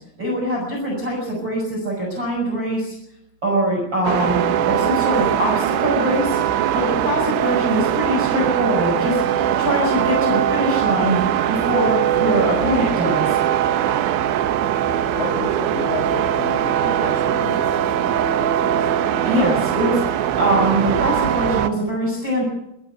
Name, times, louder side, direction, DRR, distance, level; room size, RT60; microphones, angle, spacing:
voice 1, 0.2-2.9 3.4-6.4 6.7-9.2 9.6-11.2 11.5-13.4 19.2-22.5, right 1 dB, 25° right, -3 dB, 6.7 m, -22 dB
sound 1, 4.1-21.7, right 10 dB, 80° right, 3.3 m, -21 dB
voice 2, 15.1-17.7, left 6 dB, 90° left, 7 dB, 1.6 m, -31 dB
25.0 x 12.0 x 9.2 m, 0.82 s
omnidirectional pair, 5.2 m